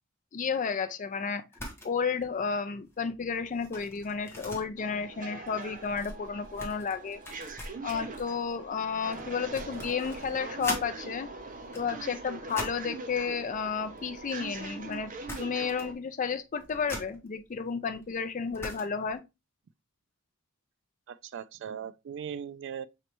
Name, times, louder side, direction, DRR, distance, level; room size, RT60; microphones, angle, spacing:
voice 1, 0.3-1.4 1.8-7.2 7.8-11.3 11.8-15.1 15.4-19.2, left 5 dB, 40° left, 0.4 m, -32 dB
sound 1, 1.5-1.9 2.2-2.5 2.8-10.9 11.5-12.9 13.8-14.6 14.9-15.0 15.3-16.0 16.3-19.1, left 1 dB, 10° left, 1.0 m, -43 dB
sound 2, 4.8-15.9, right 3 dB, 40° right, 0.7 m, -42 dB
voice 2, 21.1-22.9, right 8 dB, 60° right, 0.3 m, -39 dB
5.1 x 3.2 x 2.9 m
head